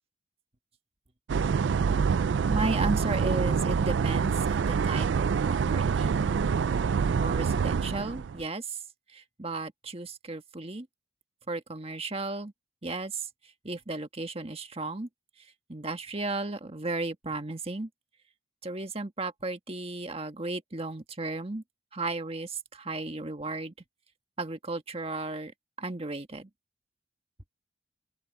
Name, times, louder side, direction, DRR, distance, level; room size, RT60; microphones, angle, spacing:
sound 1, 1.3-8.4, right 6 dB, 90° right, 0.4 m, -26 dB
voice 1, 2.5-6.2 7.2-8.8 9.1-10.9 11.5-12.5 12.8-13.3 13.6-15.1 15.7-17.9 18.6-21.6 21.9-23.7 24.4-26.5, right 2 dB, 35° right, 1.5 m, -34 dB
open air
head